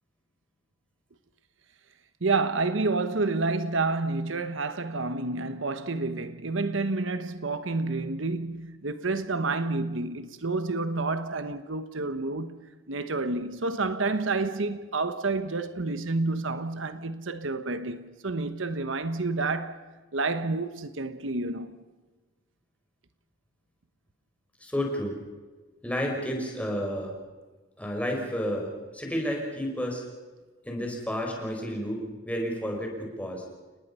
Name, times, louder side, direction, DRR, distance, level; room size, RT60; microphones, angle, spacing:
voice 1, 2.2-19.9 20.1-21.8, right 3 dB, 75° right, 1.1 m, -29 dB
voice 2, 24.6-25.2 25.8-27.1 27.8-30.0 30.6-32.0 32.3-33.4, equal, 5° left, 5.4 m, -31 dB
30.0 x 19.0 x 5.6 m
head